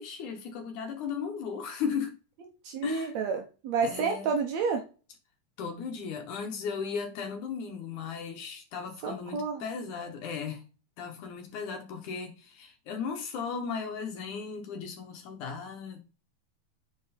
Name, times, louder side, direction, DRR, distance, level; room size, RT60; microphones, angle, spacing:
voice 1, 0.0-2.2 2.8-3.1 3.8-4.3 5.6-10.6 11.0-16.0, left 6 dB, 65° left, 2.3 m, -36 dB
voice 2, 2.6-4.8 9.0-9.6, right 5 dB, 75° right, 1.6 m, -30 dB
7.5 x 4.6 x 4.2 m
omnidirectional pair, 4.3 m